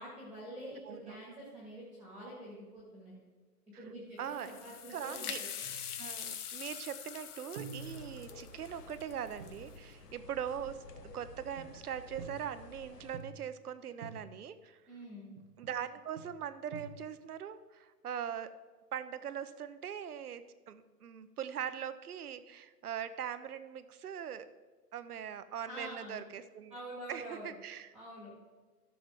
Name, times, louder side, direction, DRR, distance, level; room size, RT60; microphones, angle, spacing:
voice 1, 0.0-3.2 3.8-5.5 14.9-15.4 25.7-26.2 26.7-27.5 27.9-28.3, right 1 dB, ahead, -5 dB, 1.7 m, -46 dB
voice 2, 0.8-1.3 3.7-3.8 4.2-4.5 4.9-5.4 6.0-14.8 15.6-18.5 18.9-24.5 24.9-26.7 27.1-27.9, right 9 dB, 70° right, 13 dB, 0.8 m, -41 dB
sound 1, 4.2-9.8, left 8 dB, 70° left, 0.9 m, -44 dB
sound 2, 5.6-6.5 7.6-8.8 9.4-9.7 10.7-11.2 11.6-12.7 13.1-13.7 14.0-14.6 15.4-15.9 16.2-17.3, right 4 dB, 30° right, 0.6 m, -49 dB
sound 3, 7.8-13.2, left 2 dB, 90° left, 1.2 m, -53 dB
13.0 x 6.8 x 3.6 m, 1.3 s
hypercardioid pair, 140°, 47 cm